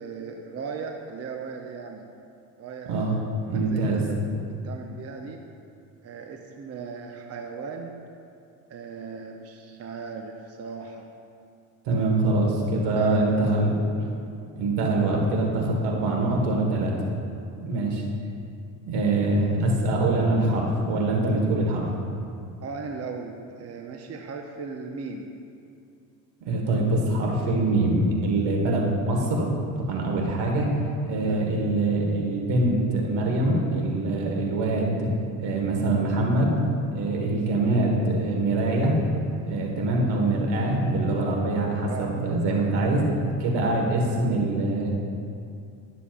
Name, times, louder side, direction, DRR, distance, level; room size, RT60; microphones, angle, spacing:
voice 1, 0.0-2.1 2.6-3.1 3.5-4.2 4.6-5.4 6.0-8.0 8.7-11.1 12.9-13.5 22.6-25.3 31.2-31.5 41.8-42.2, right 5 dB, 35° right, 3 dB, 0.7 m, -37 dB
voice 2, 2.9-3.2 3.5-4.0 11.9-13.8 14.6-16.9 17.6-18.0 18.9-21.9 26.4-29.5 29.8-30.7 31.0-35.1 35.4-36.6 36.9-38.9 39.5-43.0 43.4-44.9, right 2 dB, 75° right, -1 dB, 1.8 m, -24 dB
12.0 x 6.9 x 2.5 m, 2.5 s
supercardioid pair, 85°, 43 cm